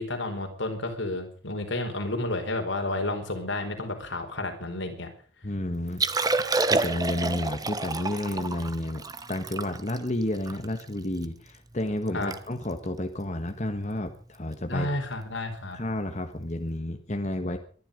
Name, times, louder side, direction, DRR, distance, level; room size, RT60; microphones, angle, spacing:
voice 1, 0.0-5.1 12.1-12.3 14.6-15.8, left 2 dB, 80° left, 4 dB, 4.4 m, -31 dB
voice 2, 5.4-6.0 6.7-9.0 9.3-14.9 15.7-17.6, left 1 dB, 40° left, 5 dB, 1.5 m, -31 dB
Liquid, 5.9-11.3 11.7-11.8 12.1-12.4 12.6-12.9 13.5-13.7 15.2-15.3, right 3 dB, 20° right, 1.0 m, -29 dB
23.5 x 11.0 x 5.3 m, 0.43 s
head